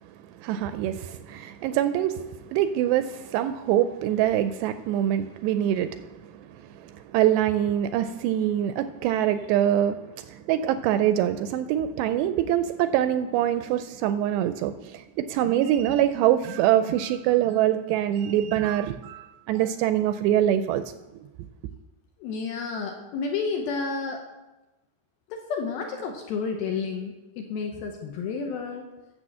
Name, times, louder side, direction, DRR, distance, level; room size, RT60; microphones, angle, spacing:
voice 1, 0.4-20.8, right 11 dB, 85° right, 10 dB, 2.5 m, -24 dB
voice 2, 22.2-24.2 25.3-28.9, left 5 dB, 75° left, 3 dB, 2.4 m, -31 dB
9.9 x 7.3 x 7.4 m, 1.0 s
omnidirectional pair, 5.2 m